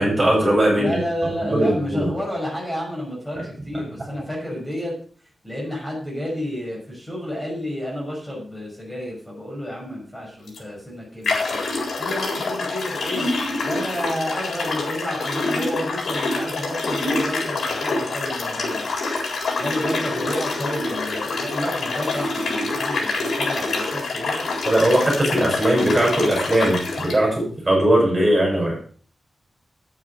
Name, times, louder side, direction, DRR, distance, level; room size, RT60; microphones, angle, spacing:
voice 1, 0.0-1.0 1.4-2.1 24.7-28.8, right 1 dB, 20° right, -2 dB, 6.3 m, -19 dB
voice 2, 0.7-4.9 5.4-11.6 12.0-13.3 13.6-18.9 19.6-24.5, equal, 10° left, -4 dB, 5.8 m, -30 dB
sound 1, 10.5-10.6 11.2-27.2, left 3 dB, 85° left, 4.2 m, -26 dB
9.4 x 9.1 x 6.6 m, 0.44 s
wide cardioid pair, 170°, 0 cm